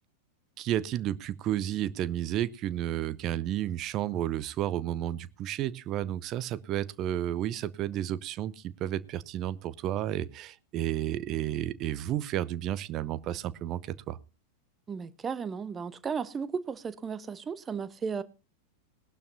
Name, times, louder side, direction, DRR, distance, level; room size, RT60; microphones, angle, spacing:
voice 1, 0.6-14.2, right 12 dB, 35° right, 0.7 m, -32 dB
voice 2, 14.9-18.2, right 6 dB, 20° right, 1.0 m, -34 dB
20.0 x 12.0 x 2.8 m
figure-of-eight pair, 90°, 0 cm